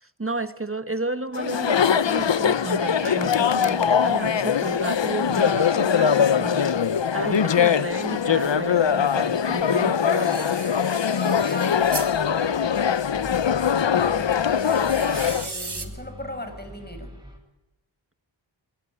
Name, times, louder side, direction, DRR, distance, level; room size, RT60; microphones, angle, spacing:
voice 1, 0.0-10.6, right 2 dB, 30° right, 12 dB, 1.3 m, -32 dB
Chatter, 1.3-15.5, left 7 dB, 65° left, 0.8 m, -22 dB
sound 1, 7.3-7.4 7.7-8.1 8.8-12.1 14.3-15.9, right 3 dB, 55° right, 2.9 m, -38 dB
voice 2, 11.0-13.3 13.9-17.1, left 1 dB, 20° left, 7 dB, 6.0 m, -39 dB
sound 2, 11.7-17.4, equal, 10° right, 7.4 m, -43 dB
22.0 x 20.0 x 9.5 m, 1.0 s
wide cardioid pair, 55°, 47 cm